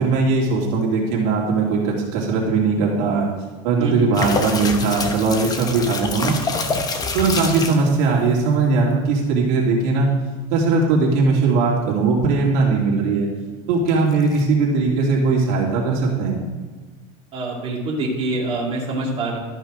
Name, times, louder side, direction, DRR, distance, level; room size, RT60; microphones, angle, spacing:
voice 1, 0.0-3.3 3.6-6.3 7.1-10.1 10.5-13.3 13.7-16.4, right 4 dB, 60° right, -2 dB, 2.6 m, -19 dB
voice 2, 3.8-4.1 17.3-19.4, right 2 dB, 30° right, -5 dB, 2.4 m, -25 dB
sound 1, 4.1-7.9 13.9-14.4, left 4 dB, 20° left, 1.0 m, -26 dB
12.5 x 5.5 x 5.0 m, 1.3 s
supercardioid pair, 135°, 17 cm